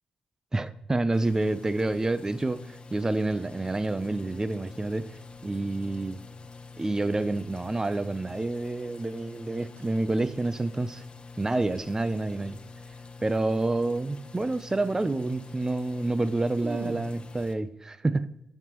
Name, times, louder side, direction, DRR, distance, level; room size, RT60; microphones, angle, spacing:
voice 1, 0.5-5.2 5.4-6.2 6.8-11.0 11.4-12.6 13.2-18.3, right 2 dB, 20° right, 14 dB, 0.5 m, -28 dB
sound 1, 1.1-17.5, left 4 dB, 40° left, 0.9 m, -46 dB
sound 2, 9.8-10.0 10.4-11.0 14.4-14.5 14.7-15.1 15.4-15.6 16.0-16.1 16.3-17.1, right 5 dB, 85° right, 0.8 m, -42 dB
13.0 x 5.4 x 3.0 m, 0.87 s
supercardioid pair, 55°, 3 cm